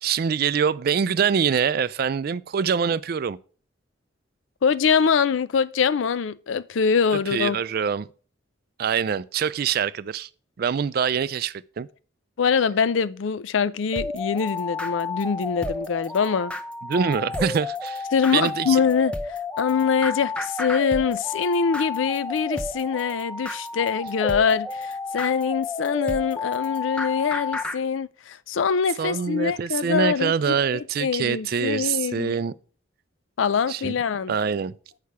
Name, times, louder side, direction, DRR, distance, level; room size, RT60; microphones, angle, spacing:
voice 1, 0.0-3.4 7.3-8.1 8.8-10.3 10.6-11.9 16.8-18.0 18.3-18.8 29.0-32.5 33.7-33.9 34.3-34.7, right 6 dB, 50° right, 0.3 m, -24 dB
voice 2, 4.6-7.6 12.4-16.5 18.1-32.4 33.4-34.3, left 6 dB, 75° left, 0.4 m, -24 dB
sound 1, 13.9-27.8, left 4 dB, 5° left, 0.6 m, -31 dB
8.5 x 5.7 x 4.7 m
head